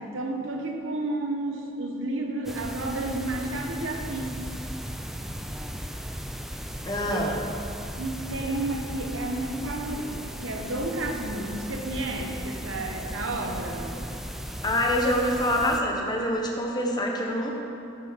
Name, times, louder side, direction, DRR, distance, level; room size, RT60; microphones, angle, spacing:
voice 1, 0.0-4.4 7.1-7.4 8.0-14.0, right 2 dB, 80° right, 2 dB, 0.9 m, -31 dB
sound 1, 2.4-15.8, equal, ahead, 0.3 m, -36 dB
voice 2, 6.8-7.4 14.6-17.5, left 1 dB, 20° left, 0 dB, 1.0 m, -25 dB
9.9 x 6.3 x 5.1 m, 2.7 s
head